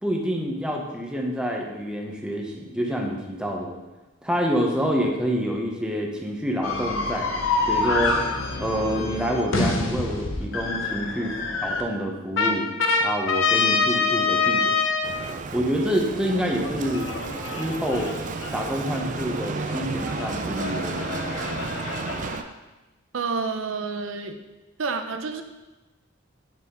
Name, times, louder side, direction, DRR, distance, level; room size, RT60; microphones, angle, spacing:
voice 1, 0.0-3.8 4.2-8.2 8.6-11.3 11.6-12.7 13.0-14.8 15.5-17.1 17.6-18.1 18.5-21.0, equal, 5° right, 0 dB, 0.9 m, -27 dB
sound 1, 6.6-11.8 12.4-15.1 16.6-22.4, left 4 dB, 85° left, 0.9 m, -26 dB
Bicycle, 15.0-22.4, right 4 dB, 40° right, 0.4 m, -32 dB
voice 2, 23.1-24.4 24.8-25.4, right 4 dB, 85° right, 7 dB, 0.6 m, -29 dB
8.3 x 5.9 x 3.8 m, 1.1 s
head